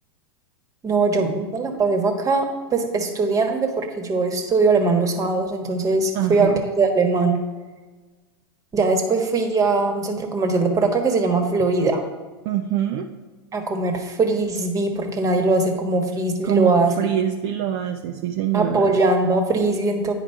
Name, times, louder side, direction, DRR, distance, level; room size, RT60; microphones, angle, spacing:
voice 1, 0.8-6.5 6.8-7.4 8.7-12.0 13.5-16.9 18.5-20.1, right 3 dB, 25° right, 5 dB, 1.3 m, -21 dB
voice 2, 6.1-6.6 12.4-13.1 16.4-19.0, right 10 dB, 50° right, 4 dB, 0.5 m, -24 dB
10.0 x 4.9 x 4.5 m, 1.3 s
hypercardioid pair, 100°, 14 cm